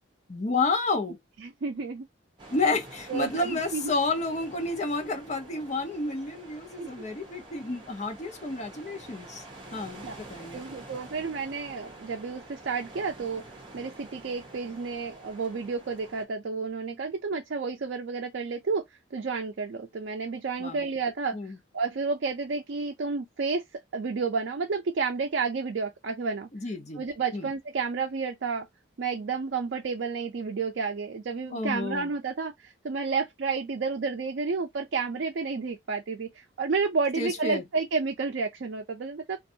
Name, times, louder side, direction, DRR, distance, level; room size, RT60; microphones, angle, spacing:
voice 1, 0.3-1.2 2.5-9.4 9.7-10.6 20.6-20.8 21.3-21.6 26.5-27.0 27.3-27.5 31.5-32.1 37.2-37.6, left 3 dB, 35° left, 0.6 m, -30 dB
voice 2, 1.4-2.1 3.1-3.9 6.8-7.1 10.0-10.1 10.5-13.4 13.7-18.8 19.1-21.3 21.7-26.5 27.0-28.7 29.0-39.4, right 4 dB, 60° right, 0.4 m, -31 dB
sound 1, 2.4-16.3, right 2 dB, 25° right, 0.9 m, -47 dB
2.5 x 2.3 x 2.6 m
head